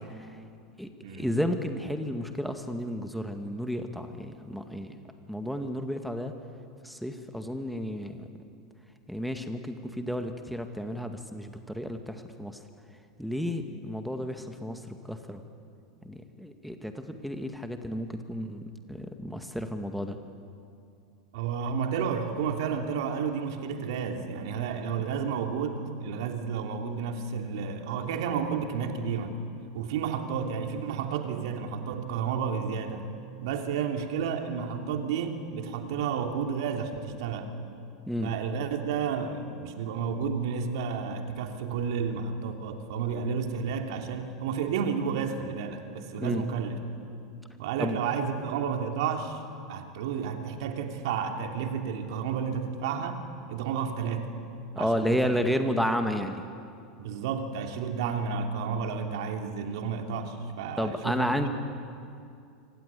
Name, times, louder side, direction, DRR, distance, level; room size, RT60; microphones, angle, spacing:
voice 1, 1.2-5.0 5.3-6.3 6.8-8.2 9.1-12.6 13.2-15.4 16.0-18.6 18.9-20.2 38.1-38.3 46.2-46.4 47.8-48.0 54.7-56.4 60.8-61.5, equal, ahead, 6 dB, 2.1 m, -32 dB
voice 2, 21.3-29.4 29.7-33.1 33.4-37.6 38.2-46.8 47.6-49.4 49.7-53.2 53.5-54.4 54.7-55.3 57.0-61.5, right 6 dB, 60° right, 4 dB, 2.9 m, -31 dB
26.5 x 25.5 x 8.5 m, 2.5 s
figure-of-eight pair, 85°, 3 cm